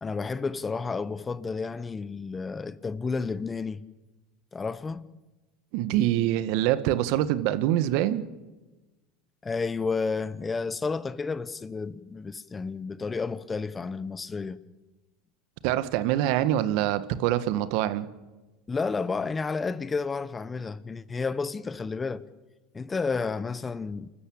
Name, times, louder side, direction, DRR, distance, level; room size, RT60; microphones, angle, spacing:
voice 1, 0.0-3.8 4.5-5.1 9.4-14.6 18.7-22.2 22.7-24.1, left 4 dB, 20° left, 1.2 m, -31 dB
voice 2, 5.7-8.2 15.6-18.1, right 13 dB, 65° right, 1.6 m, -25 dB
29.0 x 13.5 x 8.7 m
hypercardioid pair, 95°, 0 cm